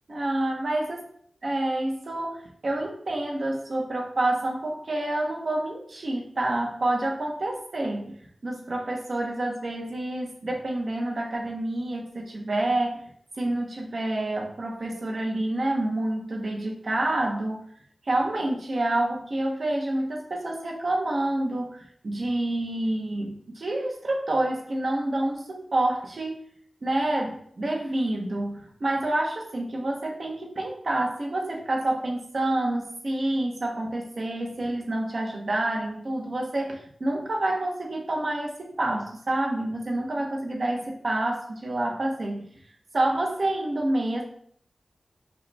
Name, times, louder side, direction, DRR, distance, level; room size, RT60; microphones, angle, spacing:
voice 1, 0.1-1.0 1.4-13.0 13.4-17.6 18.0-26.4 26.8-42.5 42.9-44.2, right 1 dB, 55° right, 0 dB, 0.8 m, -28 dB
5.3 x 2.2 x 3.2 m, 0.62 s
wide cardioid pair, 100°, 0 cm